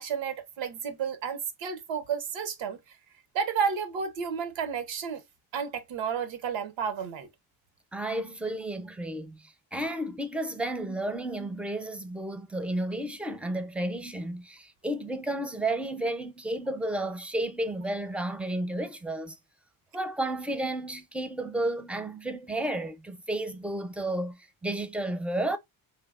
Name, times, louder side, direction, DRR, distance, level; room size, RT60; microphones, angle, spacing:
voice 1, 0.0-2.8 3.3-5.2 5.5-7.3, right 6 dB, 85° right, 0.7 m, -31 dB
voice 2, 7.9-19.4 19.9-25.6, right 1 dB, 5° right, 0.5 m, -32 dB
3.3 x 2.2 x 2.3 m
supercardioid pair, 55°, 44 cm